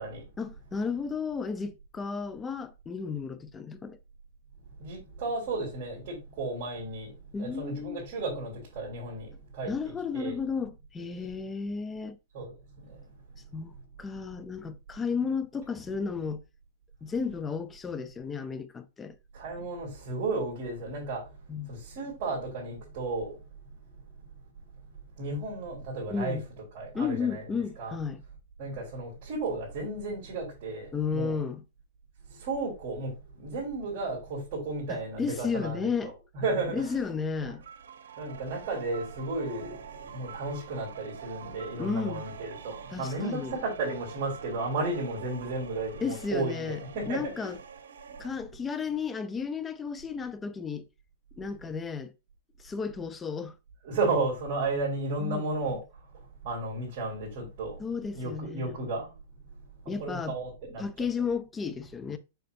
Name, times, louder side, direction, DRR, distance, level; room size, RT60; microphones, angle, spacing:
voice 1, 0.4-4.0 7.3-8.0 9.7-12.2 13.5-16.4 17.0-19.1 21.5-21.7 26.1-26.4 26.9-28.2 30.9-31.6 34.9-36.1 36.7-37.6 41.8-42.3 42.9-43.6 46.0-46.8 47.1-47.6 48.2-50.8 51.4-52.1 52.6-53.5 55.2-55.4 57.8-58.8 59.9-60.3 60.8-62.2, left 5 dB, 15° left, 0.6 m, -33 dB
voice 2, 4.6-7.1 7.4-9.7 10.1-10.3 12.3-12.5 12.8-13.0 19.3-23.3 23.6-23.7 25.2-26.4 26.7-28.0 28.6-31.4 32.3-37.0 37.4-37.5 38.2-47.5 53.8-57.8 58.1-59.1 59.5-60.9, right 2 dB, 45° right, 3.7 m, -34 dB
sound 1, 37.6-48.3, right 7 dB, 85° right, 1.1 m, -46 dB
6.8 x 6.5 x 2.7 m
hypercardioid pair, 140°, 0 cm